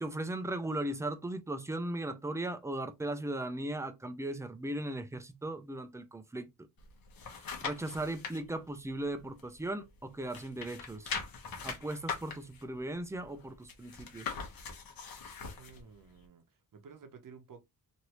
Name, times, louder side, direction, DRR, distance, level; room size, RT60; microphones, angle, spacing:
voice 1, 0.0-6.5 7.3-11.1 11.6-14.3, right 1 dB, 10° right, 0.4 m, -37 dB
sound 1, 6.8-8.4 8.9-10.0 10.2-15.8 16.2-16.3, left 5 dB, 65° left, 1.0 m, -41 dB
voice 2, 15.6-17.7, right 6 dB, 60° right, 0.8 m, -53 dB
3.1 x 2.6 x 2.9 m
wide cardioid pair, 115°, 37 cm